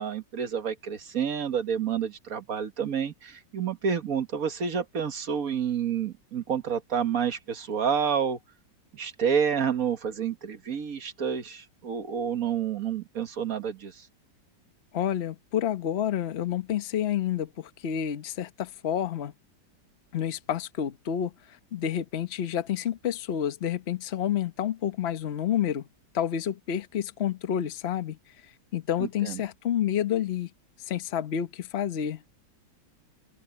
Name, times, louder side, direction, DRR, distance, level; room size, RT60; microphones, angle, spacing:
voice 1, 0.0-8.4 8.9-14.1 29.0-29.4, right 7 dB, 50° right, 1.7 m, -29 dB
voice 2, 14.9-19.3 20.1-25.9 26.1-28.2 28.7-30.5 30.9-32.2, left 10 dB, 40° left, 1.1 m, -29 dB
open air
omnidirectional pair, 1.9 m